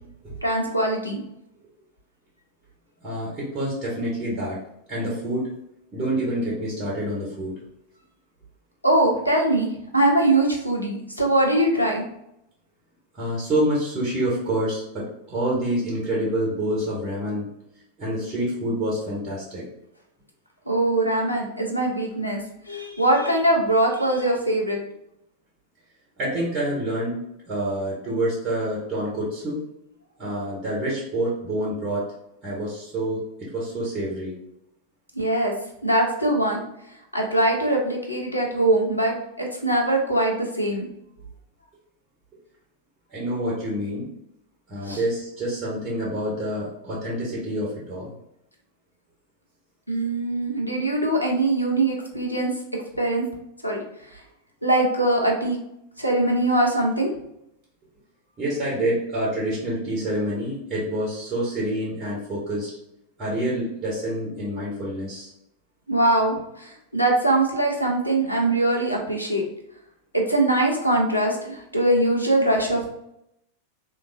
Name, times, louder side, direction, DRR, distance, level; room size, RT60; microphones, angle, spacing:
voice 1, 0.4-1.2 8.8-9.7 9.9-12.0 20.7-22.4 22.7-24.8 35.1-35.5 35.8-36.6 37.1-40.9 44.9-45.0 49.9-52.5 52.9-53.2 53.6-53.8 54.6-55.6 56.0-57.1 65.9-69.4 70.1-72.8, right 1 dB, 90° left, 0 dB, 0.7 m, -22 dB
voice 2, 3.0-4.6 4.9-5.5 5.9-7.5 13.1-17.5 18.0-19.6 26.2-29.6 30.2-32.1 32.4-34.3 43.1-44.1 44.7-48.1 58.4-62.7 63.2-65.3, right 1 dB, 25° right, -4 dB, 1.3 m, -27 dB
3.4 x 2.8 x 2.6 m, 0.80 s
figure-of-eight pair, 90°, 0 cm